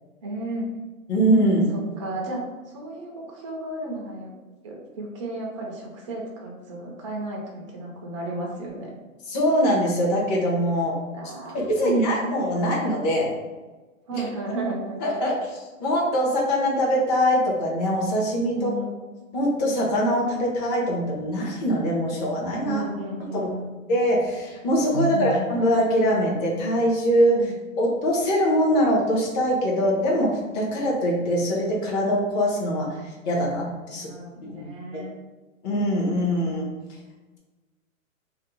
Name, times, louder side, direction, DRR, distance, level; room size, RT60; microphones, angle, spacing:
voice 1, 0.2-0.7 1.7-2.4 2.7-4.3 4.6-8.9 11.1-12.3 14.1-15.0 18.5-19.0 22.6-23.7 24.9-25.4 27.3-27.5 34.0-35.1, right 2 dB, 25° right, -2 dB, 0.4 m, -33 dB
voice 2, 1.1-1.7 9.3-10.9 11.7-13.3 14.2-14.3 15.0-18.7 19.3-22.8 23.3-23.5 23.9-27.4 27.8-32.9 33.2-34.1 34.6-34.7 35.6-36.7, equal, 30° left, -3 dB, 0.8 m, -23 dB
2.6 x 2.1 x 3.8 m, 1.2 s
hypercardioid pair, 140°, 41 cm